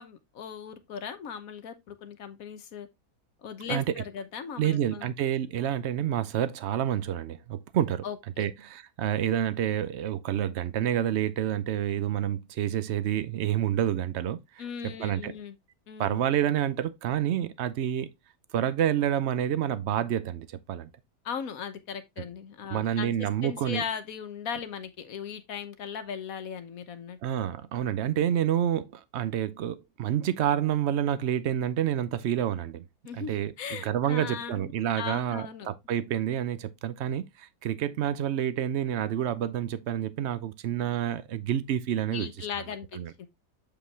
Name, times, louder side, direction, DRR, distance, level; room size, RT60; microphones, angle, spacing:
voice 1, 0.0-2.9 3.4-5.1 8.0-8.5 14.6-15.6 15.9-16.2 21.2-27.2 33.0-35.7 42.1-43.3, left 7 dB, 60° left, 1.3 m, -38 dB
voice 2, 4.6-8.0 8.4-14.6 15.0-15.3 16.0-18.1 18.5-20.9 22.7-23.8 27.2-32.8 33.1-33.5 33.8-42.3 43.0-43.1, right 10 dB, 75° right, 0.6 m, -28 dB
7.8 x 5.0 x 3.2 m
omnidirectional pair, 1.8 m